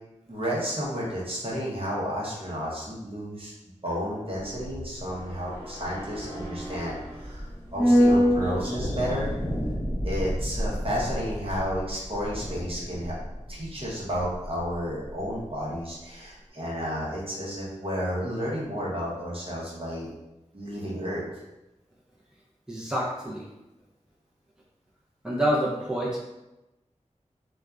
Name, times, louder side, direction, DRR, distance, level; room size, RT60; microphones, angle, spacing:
voice 1, 0.3-3.5 3.8-7.5 7.7-9.3 10.0-13.2 13.5-20.1 20.5-21.2, equal, 50° right, -5 dB, 0.8 m, -32 dB
sound 1, 4.4-14.8 15.1-15.2, equal, 20° left, 1.3 m, -28 dB
voice 2, 22.7-23.4 25.2-26.2, equal, 5° right, -6 dB, 0.6 m, -27 dB
2.6 x 2.2 x 2.3 m, 0.99 s
wide cardioid pair, 50°, 13 cm